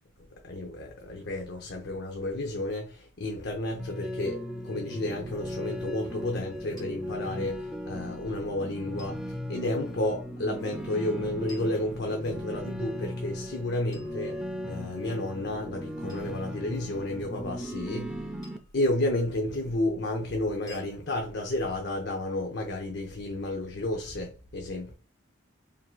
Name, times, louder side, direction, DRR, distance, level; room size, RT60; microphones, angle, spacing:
voice 1, 0.4-18.3 18.7-24.9, left 1 dB, 55° left, 0.6 m, -32 dB
sound 1, 3.8-18.6, equal, 5° right, 0.4 m, -37 dB
sound 2, 6.8-6.9 9.0-9.2 11.5-12.4 13.9-14.8 16.1-16.4 18.4-18.8 20.7-20.9, left 1 dB, 20° left, 2.2 m, -53 dB
4.5 x 3.6 x 2.2 m
head